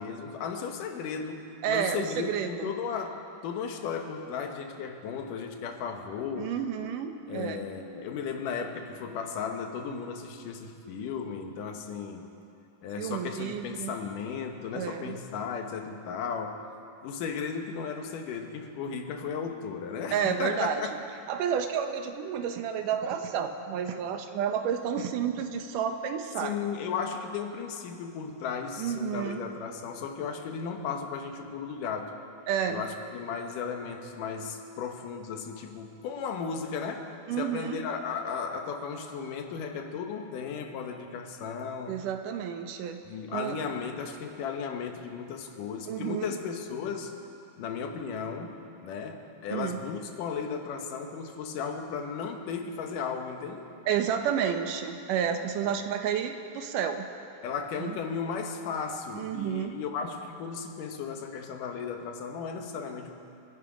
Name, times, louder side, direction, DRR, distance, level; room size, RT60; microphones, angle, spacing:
voice 1, 0.0-6.6 7.3-12.3 12.8-16.6 17.0-20.9 26.4-32.2 32.7-42.0 43.1-47.1 47.6-53.7 57.4-63.1, left 6 dB, 85° left, 5 dB, 2.8 m, -35 dB
voice 2, 1.6-2.7 6.4-7.6 13.0-14.0 14.7-15.2 20.1-20.8 21.3-26.5 28.8-29.4 32.5-32.8 37.3-37.8 41.9-43.0 43.3-43.6 45.9-46.4 49.5-49.8 53.9-57.1 57.8-58.0 59.1-59.7, right 8 dB, 85° right, 7 dB, 2.5 m, -30 dB
27.0 x 10.5 x 5.0 m, 2.6 s
omnidirectional pair, 3.6 m